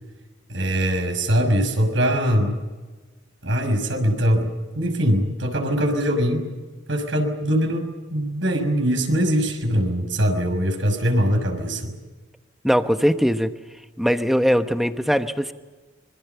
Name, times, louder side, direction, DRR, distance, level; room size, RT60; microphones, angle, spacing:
voice 1, 0.5-2.6 3.4-6.5 6.9-11.9, equal, 70° right, 5 dB, 6.1 m, -22 dB
voice 2, 12.6-13.5 14.0-15.5, equal, ahead, 8 dB, 1.1 m, -20 dB
25.5 x 24.5 x 7.0 m, 1.3 s
head